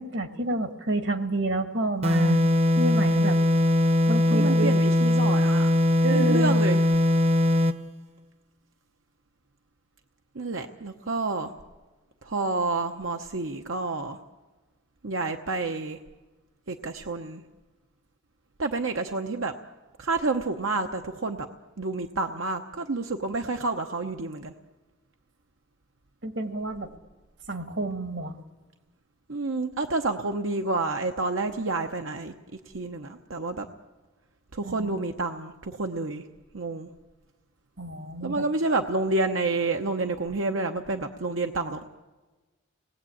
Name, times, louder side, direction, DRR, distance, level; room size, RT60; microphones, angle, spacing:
voice 1, 0.0-2.4 2.8-3.4 4.1-4.8 6.0-6.5 26.2-26.9 27.5-28.3 34.6-35.0 37.8-38.5, right 2 dB, 65° right, 8 dB, 1.7 m, -29 dB
sound 1, 2.0-7.8, left 1 dB, 30° right, 0.7 m, -21 dB
voice 2, 4.3-5.7 6.1-6.8 10.3-11.5 12.2-14.2 15.0-16.0 16.7-17.4 18.6-19.5 20.0-21.5 21.8-24.5 29.3-32.3 32.7-33.7 34.5-36.3 36.5-36.9 38.2-41.8, right 3 dB, 85° right, 5 dB, 1.0 m, -29 dB
29.0 x 19.5 x 8.6 m, 1.3 s
head